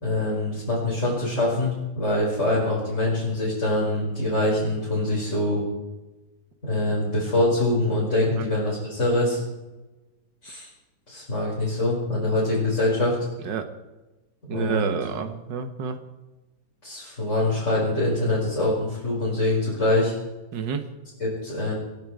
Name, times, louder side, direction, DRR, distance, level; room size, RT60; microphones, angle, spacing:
voice 1, 0.0-5.6 6.6-9.4 10.4-10.7 11.1-13.1 14.5-14.9 16.8-20.1 21.2-21.7, left 1 dB, 40° left, -7 dB, 5.7 m, -24 dB
voice 2, 14.5-16.0 20.5-20.8, right 7 dB, 75° right, 7 dB, 2.0 m, -29 dB
27.0 x 10.5 x 4.9 m, 1.1 s
omnidirectional pair, 2.0 m